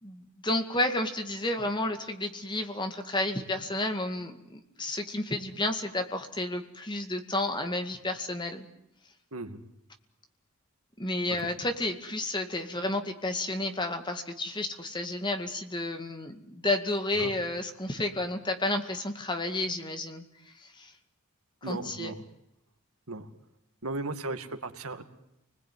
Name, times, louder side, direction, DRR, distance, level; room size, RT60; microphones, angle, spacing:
voice 1, 0.0-8.7 11.0-20.9 21.7-22.1, left 1 dB, 20° left, 6 dB, 2.1 m, -31 dB
voice 2, 21.6-22.2 23.1-23.3 23.8-25.0, right 2 dB, 75° right, 7 dB, 2.3 m, -36 dB
30.0 x 20.5 x 9.5 m, 0.85 s
head